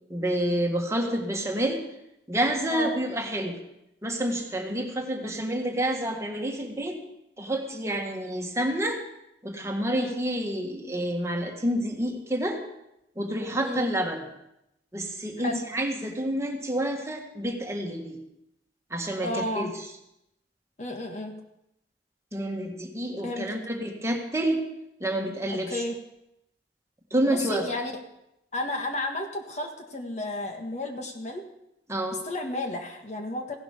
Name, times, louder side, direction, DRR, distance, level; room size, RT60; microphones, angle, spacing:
voice 1, 0.1-1.8 2.3-3.6 4.0-6.9 7.4-9.0 9.4-12.6 13.2-14.2 14.9-18.2 18.9-19.7 22.3-24.6 25.0-25.8 27.1-27.7 31.9-32.2, right 1 dB, 15° right, 2 dB, 1.7 m, -28 dB
voice 2, 19.2-19.7 20.8-21.3 23.2-23.6 25.5-26.0 27.3-27.9 28.5-31.4 32.2-33.6, left 1 dB, 40° left, 4 dB, 1.6 m, -32 dB
16.0 x 11.5 x 5.1 m, 0.84 s
head